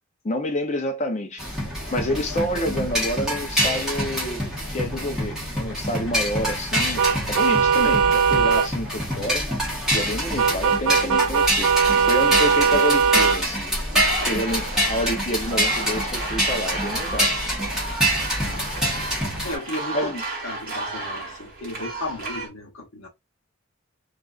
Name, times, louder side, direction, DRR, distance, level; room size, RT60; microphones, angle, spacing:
voice 1, 0.2-1.5 1.9-4.5 4.7-9.5 9.9-11.8 12.1-13.6 14.3-17.3 19.9-20.2, left 1 dB, 35° left, 0.6 m, -28 dB
sound 1, 1.4-19.5, equal, 5° right, 1.1 m, -26 dB
sound 2, 7.0-8.7 10.4-13.4, right 6 dB, 85° right, 0.5 m, -19 dB
voice 2, 13.9-14.4 18.4-19.1 19.4-20.1 20.4-23.1, left 2 dB, 75° left, 0.9 m, -35 dB
sound 3, 13.9-22.5, right 2 dB, 45° right, 1.1 m, -34 dB
2.5 x 2.4 x 2.4 m
head